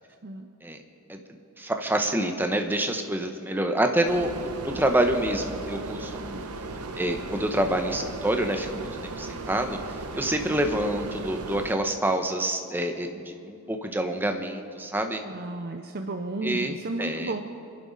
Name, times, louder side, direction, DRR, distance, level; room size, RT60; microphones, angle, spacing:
voice 1, 1.6-6.5 7.0-15.2 16.4-17.3, right 1 dB, 10° right, 5 dB, 1.0 m, -27 dB
sound 1, 4.0-11.7, right 3 dB, 85° right, 1.0 m, -36 dB
voice 2, 15.3-17.4, right 2 dB, 45° right, 5 dB, 0.7 m, -33 dB
29.0 x 11.0 x 4.1 m, 2.6 s
head